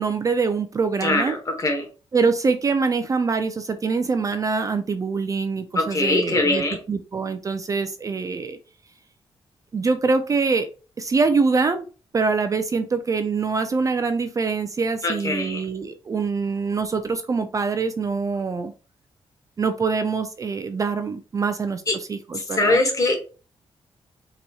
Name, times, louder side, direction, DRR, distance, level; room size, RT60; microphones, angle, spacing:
voice 1, 0.0-1.3 2.1-6.6 6.9-8.6 9.7-10.7 11.0-11.9 12.1-18.7 19.6-21.8 22.1-22.8, right 4 dB, 35° right, 9 dB, 0.3 m, -24 dB
voice 2, 1.0-1.9 5.7-6.8 15.0-15.6 21.9-22.0 22.6-23.2, left 2 dB, 35° left, 3 dB, 1.1 m, -22 dB
4.0 x 2.9 x 2.3 m, 0.35 s
cardioid pair, 110°, 10 cm